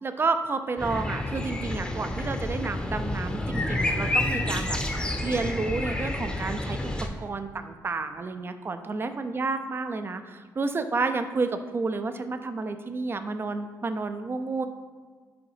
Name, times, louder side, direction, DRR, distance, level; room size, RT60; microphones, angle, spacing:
voice 1, 0.0-6.8 7.2-14.7, right 3 dB, 30° right, 9 dB, 0.5 m, -30 dB
sound 1, 0.8-7.1, left 1 dB, 15° left, 0.8 m, -29 dB
4.9 x 3.8 x 4.9 m, 1.5 s
cardioid pair, 80°, 7 cm